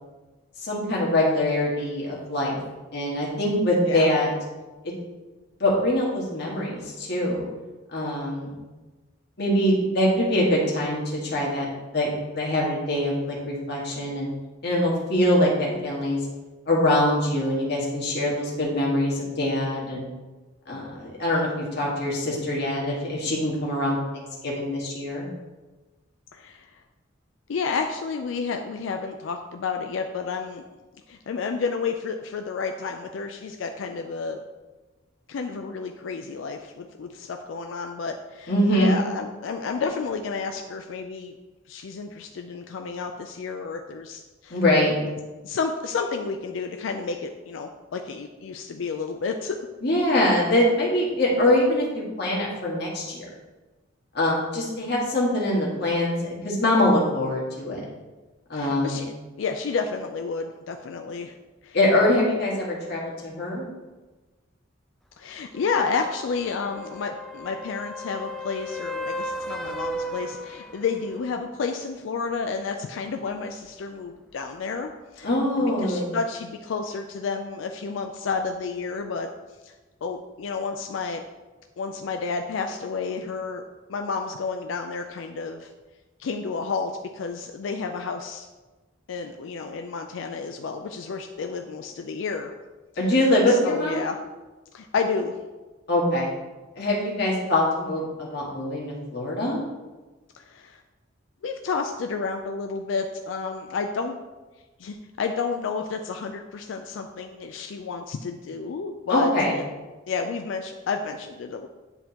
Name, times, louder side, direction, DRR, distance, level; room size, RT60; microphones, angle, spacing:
voice 1, 0.6-2.6 2.9-4.3 4.8-4.9 5.6-7.5 7.9-8.6 9.4-14.3 14.6-16.2 16.7-20.0 20.7-25.3 38.5-39.0 44.5-44.9 49.8-53.2 54.1-56.2 56.4-57.8 58.5-59.0 61.7-63.7 75.2-76.2 93.0-94.0 95.9-96.3 96.7-99.6 109.1-109.5, left 1 dB, 55° left, -4 dB, 1.8 m, -23 dB
voice 2, 26.3-26.8 27.5-30.6 31.1-34.4 35.3-41.3 41.7-44.6 45.4-49.6 58.5-61.3 61.6-61.8 65.2-75.3 75.6-79.3 79.6-79.7 80.0-81.2 81.8-83.6 83.9-85.7 86.2-88.5 89.1-92.5 93.0-93.1 93.5-94.2 94.7-95.4 100.3-100.8 101.4-104.2 104.8-109.6 110.1-111.7, left 5 dB, 75° left, 5 dB, 0.4 m, -31 dB
sound 1, 65.5-71.2 75.3-75.4, equal, ahead, 0.3 m, -35 dB
9.9 x 3.5 x 2.9 m, 1.2 s
head